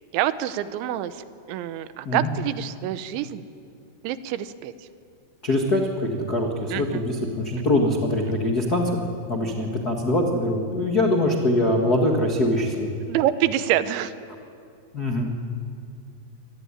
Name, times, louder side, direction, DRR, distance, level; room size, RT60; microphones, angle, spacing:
voice 1, 0.1-1.1 1.5-3.4 4.0-4.7 6.7-7.0 7.6-7.7 13.1-14.1, right 12 dB, 85° right, 13 dB, 3.2 m, -26 dB
voice 2, 5.4-5.8 6.1-7.2 7.4-8.9 9.3-12.9 14.9-15.3, left 1 dB, 65° left, 1 dB, 0.9 m, -23 dB
25.5 x 19.0 x 9.9 m, 2.5 s
omnidirectional pair, 5.3 m